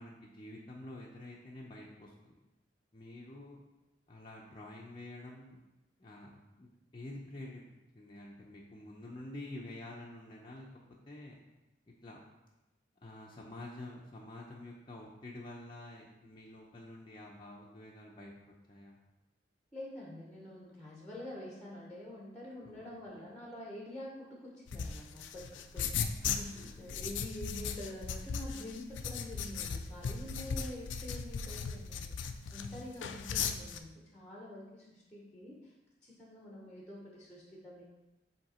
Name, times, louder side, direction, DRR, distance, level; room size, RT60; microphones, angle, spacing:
voice 1, 0.0-2.4 2.9-3.6 4.1-5.6 6.0-6.3 6.6-7.6 7.9-10.7 11.1-11.4 12.0-12.2 13.0-18.3 18.7-19.0 22.6-23.2 26.5-26.7 30.4-30.6, left 1 dB, 25° left, -4 dB, 0.6 m, -48 dB
voice 2, 19.7-32.2 32.5-35.7 36.0-37.8, left 1 dB, 5° left, -3 dB, 0.9 m, -47 dB
sound 1, 24.7-33.8, left 6 dB, 75° left, 0.4 m, -37 dB
7.6 x 2.9 x 4.2 m, 1.0 s
head